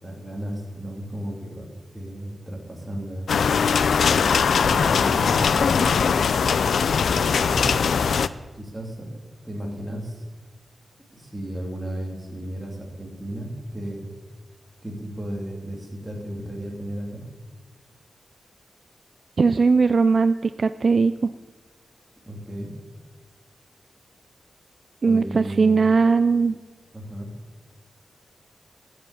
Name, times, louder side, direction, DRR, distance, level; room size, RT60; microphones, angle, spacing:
voice 1, 0.0-1.7 1.9-3.3 4.6-6.2 7.1-7.9 8.5-9.1 9.4-10.2 11.1-14.1 14.8-17.2 22.2-22.7 25.0-25.9 26.9-27.3, right 1 dB, 5° right, -2 dB, 2.9 m, -34 dB
sound 1, 3.3-8.3, left 6 dB, 80° left, 0.4 m, -20 dB
voice 2, 19.4-21.3 25.0-26.6, right 4 dB, 45° right, 11 dB, 0.3 m, -19 dB
14.0 x 7.8 x 8.3 m, 1.3 s
wide cardioid pair, 160°, 0 cm